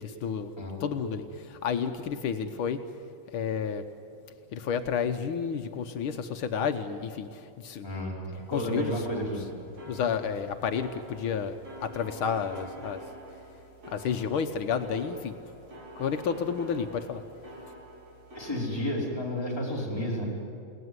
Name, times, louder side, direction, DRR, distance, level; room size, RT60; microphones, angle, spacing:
voice 1, 0.0-0.5 0.8-2.8 3.3-3.9 4.5-7.9 8.3-9.3 9.9-13.0 13.9-15.4 16.0-17.2, left 6 dB, 80° left, 7 dB, 1.8 m, -31 dB
voice 2, 7.8-8.2 8.5-9.4 18.3-20.2, equal, 10° left, -4 dB, 4.9 m, -31 dB
sound 1, 8.3-18.7, right 1 dB, 80° right, 5.7 m, -47 dB
30.0 x 18.0 x 9.6 m, 2.6 s
omnidirectional pair, 2.3 m